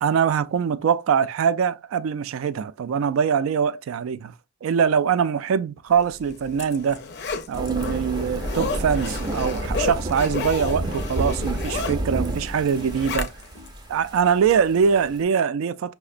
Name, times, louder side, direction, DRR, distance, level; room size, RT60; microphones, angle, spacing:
voice 1, 0.0-4.3 4.6-7.0 7.5-13.3 13.9-15.9, right 7 dB, 85° right, 0.3 m, -23 dB
Zipper (clothing), 6.1-13.7 14.1-14.2, left 4 dB, 55° left, 0.5 m, -32 dB
sound 1, 7.5-15.2, right 1 dB, 20° right, 0.4 m, -30 dB
5.6 x 2.0 x 2.4 m
head